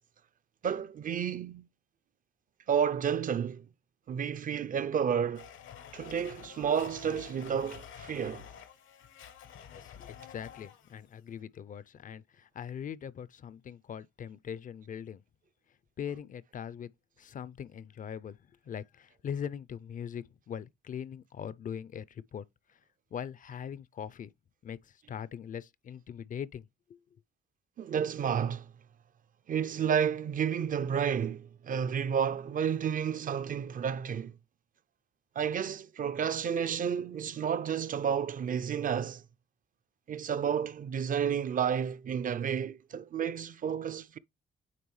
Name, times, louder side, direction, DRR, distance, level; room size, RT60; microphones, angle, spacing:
voice 1, 0.6-1.7 2.7-3.7 4.1-5.5 5.9-8.5 27.8-28.7 29.5-34.3 35.4-39.2 40.1-44.2, right 8 dB, 45° right, 0.4 m, -31 dB
Domestic sounds home sounds, 5.3-11.0, left 8 dB, 80° left, 0.9 m, -49 dB
voice 2, 9.8-15.2 16.0-16.9 17.2-18.4 18.7-22.8 23.1-24.3 24.6-27.0, left 8 dB, 45° left, 0.4 m, -41 dB
9.1 x 3.4 x 3.1 m
cardioid pair, 90°, 20 cm